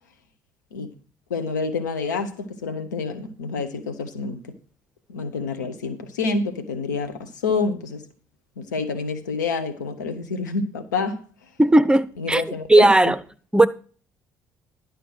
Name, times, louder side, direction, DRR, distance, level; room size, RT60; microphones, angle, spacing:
voice 1, 1.3-4.4 5.1-8.1 8.6-11.2 12.2-12.9, left 4 dB, 80° left, 1.0 m, -28 dB
voice 2, 11.6-13.2 13.5-13.7, right 2 dB, 10° right, 0.7 m, -16 dB
11.0 x 5.1 x 6.3 m
figure-of-eight pair, 50°, 9 cm